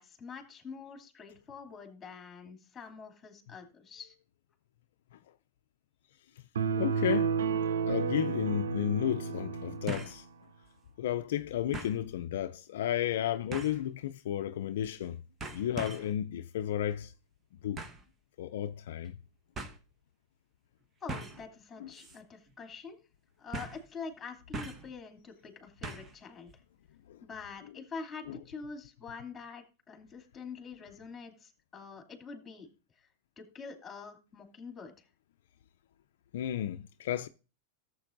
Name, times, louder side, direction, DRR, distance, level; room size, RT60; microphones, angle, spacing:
voice 1, 0.0-4.1 21.0-23.0 23.4-26.5 27.2-32.7 32.9-33.1 33.4-35.1, left 5 dB, 20° left, 2.8 m, -46 dB
sound 1, 6.6-10.1, right 6 dB, 85° right, 0.6 m, -31 dB
voice 2, 6.8-7.4 7.9-10.3 11.0-15.2 15.5-17.1 17.6-17.8 18.4-19.2 21.8-21.9 27.1-27.2 28.3-28.4 36.3-37.3, left 11 dB, 75° left, 0.4 m, -33 dB
sound 2, 8.0-8.1 9.9-10.2 10.6-10.7 11.7-12.0 13.5-13.9 14.8-15.1 15.4-16.2 17.8-18.1 19.1-19.2 19.6-19.8 21.1-21.5 21.9-22.2 22.5-22.6 23.5-23.9 24.5-24.9 25.8-26.2 26.5-26.6, right 3 dB, 25° right, 1.2 m, -41 dB
14.0 x 7.9 x 2.6 m
hypercardioid pair, 115°, 0 cm